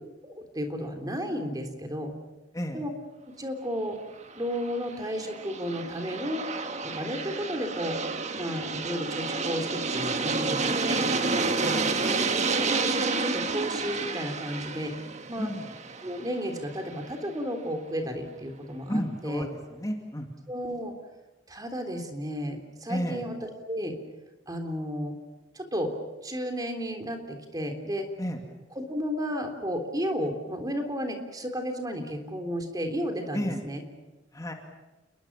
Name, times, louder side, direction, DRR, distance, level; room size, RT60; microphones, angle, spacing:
voice 1, 0.2-2.1 2.7-2.9 3.4-4.0 4.4-6.4 6.8-8.0 8.3-11.0 12.5-14.9 15.3-15.5 16.0-19.5 20.5-20.9 21.5-24.0 24.5-25.2 25.6-25.9 26.2-28.1 28.8-33.8, equal, 20° right, 5 dB, 3.5 m, -33 dB
Aircraft, 4.3-17.1, right 4 dB, 40° right, 1.6 m, -30 dB
voice 2, 11.6-12.0 15.4-15.7 18.9-19.5 19.7-20.3 22.9-23.2 28.2-28.4 33.3-33.6 34.3-34.5, equal, 20° left, 3 dB, 2.4 m, -31 dB
29.5 x 21.5 x 7.4 m, 1.1 s
head